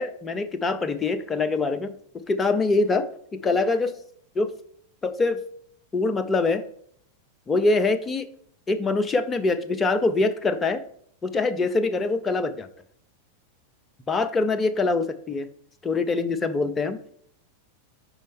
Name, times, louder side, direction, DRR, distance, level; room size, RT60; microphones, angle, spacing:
voice 1, 0.0-1.9 2.3-3.0 3.3-3.9 4.4-4.5 5.0-5.4 5.9-6.6 7.5-8.3 8.7-10.8 11.2-12.7 14.1-15.5 15.8-17.0, left 3 dB, 20° left, 10 dB, 0.5 m, -24 dB
5.3 x 5.1 x 3.5 m, 0.64 s
figure-of-eight pair, 90°, 0 cm